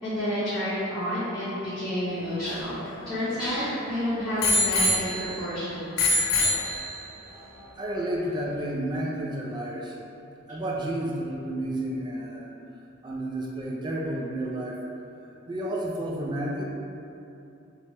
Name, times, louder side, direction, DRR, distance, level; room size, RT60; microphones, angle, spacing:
voice 1, 0.0-6.2, equal, ahead, -18 dB, 0.9 m, -30 dB
Bicycle bell, 2.1-3.8 4.4-5.6 6.0-7.2 8.0-8.1, left 1 dB, 85° left, 0.4 m, -26 dB
voice 2, 7.8-10.0 10.5-12.5 13.0-14.8 15.5-16.6, right 1 dB, 20° right, -3 dB, 0.3 m, -31 dB
2.9 x 2.2 x 2.9 m, 2.7 s
head